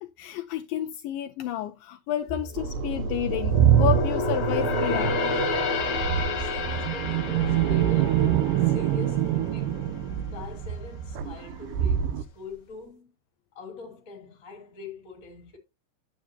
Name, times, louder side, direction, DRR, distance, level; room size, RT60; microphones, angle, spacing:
voice 1, 0.0-5.2, left 11 dB, 80° left, 2.2 m, -30 dB
sound 1, 2.4-9.9 10.2-10.5 11.0-11.7 12.1-12.2, left 3 dB, 60° left, 1.0 m, -31 dB
sound 2, 2.6-12.2, right 10 dB, 80° right, 2.1 m, -25 dB
voice 2, 5.9-9.9 10.2-13.1 13.5-15.6, left 3 dB, 30° left, 1.9 m, -43 dB
9.5 x 7.6 x 2.8 m
omnidirectional pair, 4.2 m